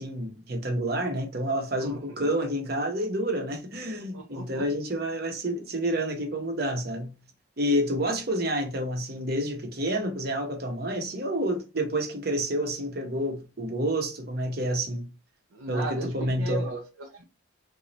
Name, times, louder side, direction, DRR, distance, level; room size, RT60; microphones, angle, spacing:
voice 1, 0.0-7.1 7.6-15.1 15.7-16.6, right 1 dB, 50° right, 0.8 m, -29 dB
voice 2, 1.8-2.3 4.1-4.7 15.5-17.2, right 2 dB, 80° right, 0.6 m, -37 dB
3.9 x 2.3 x 3.0 m
head